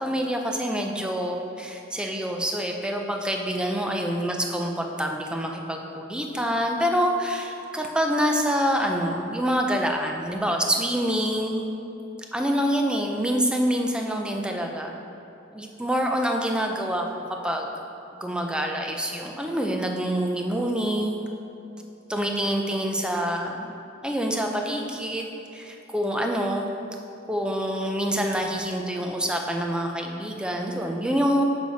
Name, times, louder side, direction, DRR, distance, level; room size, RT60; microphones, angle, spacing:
voice 1, 0.0-11.7 12.3-15.0 15.5-17.7 18.1-21.2 22.1-23.8 24.0-26.7 27.3-31.4, equal, 5° right, 2 dB, 0.5 m, -26 dB
6.6 x 4.9 x 4.0 m, 2.9 s
head